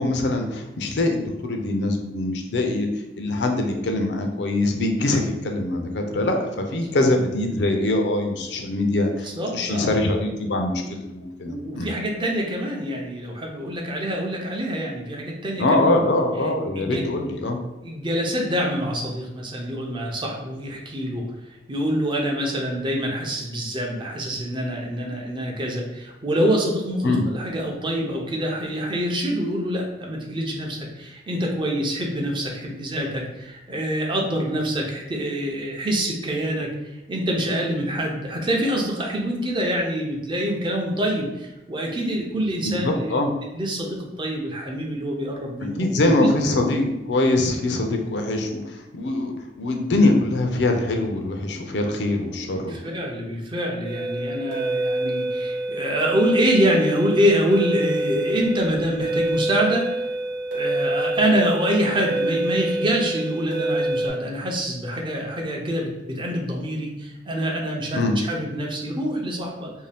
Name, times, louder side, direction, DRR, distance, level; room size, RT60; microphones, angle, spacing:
voice 1, 0.0-2.9 3.2-9.3 9.5-11.9 15.6-17.6 27.0-27.2 42.6-43.3 45.8-49.3 49.6-52.8 67.9-68.2, left 2 dB, 75° left, 4 dB, 0.5 m, -23 dB
voice 2, 9.2-10.0 11.5-16.1 16.8-17.0 17.8-21.3 21.7-43.2 43.5-46.3 52.6-60.0 60.5-69.7, equal, 30° right, 0 dB, 0.5 m, -26 dB
sound 1, 53.8-64.1, right 2 dB, 90° right, 1.0 m, -26 dB
2.7 x 2.2 x 3.3 m, 1.0 s
head